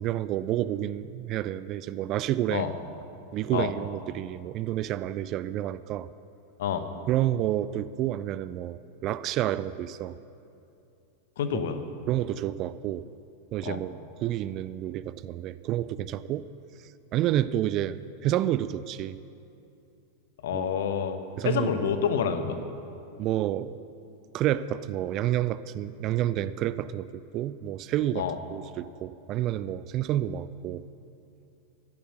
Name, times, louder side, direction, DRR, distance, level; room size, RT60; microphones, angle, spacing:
voice 1, 0.0-2.7 3.3-6.1 7.1-10.2 11.5-11.6 12.1-13.1 13.5-16.5 17.1-19.2 20.5-20.7 21.4-21.9 23.2-23.8 24.3-30.8, right 12 dB, 35° right, 16 dB, 0.3 m, -29 dB
voice 2, 11.4-11.8 13.6-13.8 20.4-21.2 21.4-22.6 28.1-28.4, left 7 dB, 60° left, 9 dB, 1.0 m, -28 dB
13.5 x 10.5 x 6.4 m, 2.7 s
figure-of-eight pair, 90°, 0 cm